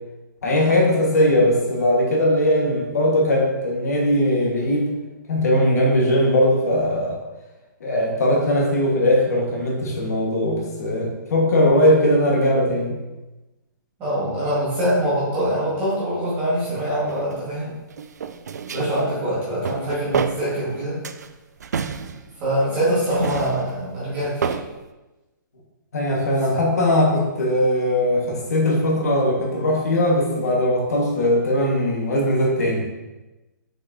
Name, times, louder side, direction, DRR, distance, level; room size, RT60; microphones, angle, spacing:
voice 1, 0.4-4.9 5.3-7.2 7.8-13.0 25.9-32.8, left 1 dB, 50° left, -1 dB, 1.4 m, -19 dB
voice 2, 14.0-17.8 18.7-21.0 22.4-24.6 26.5-26.6, equal, 10° right, -9 dB, 1.6 m, -24 dB
sound 1, 17.1-17.4 17.9-19.1 19.4-20.8 21.0-22.7 23.1-24.7, right 6 dB, 55° right, 0.4 m, -29 dB
6.1 x 5.8 x 2.7 m, 1.1 s
hypercardioid pair, 180°, 11 cm